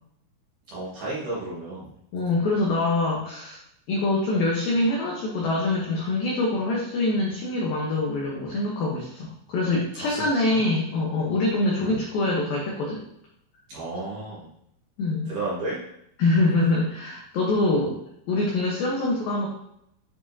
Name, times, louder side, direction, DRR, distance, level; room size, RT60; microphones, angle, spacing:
voice 1, 0.7-1.9 10.0-10.3 10.5-10.6 11.8-12.0 13.7-14.5 15.3-15.9, right 2 dB, 60° right, -8 dB, 2.3 m, -32 dB
voice 2, 2.1-3.6 3.9-13.0 15.0-15.3 16.2-18.0 18.3-19.5, left 2 dB, 85° left, -3 dB, 2.0 m, -24 dB
9.8 x 5.0 x 2.7 m, 0.76 s
omnidirectional pair, 5.8 m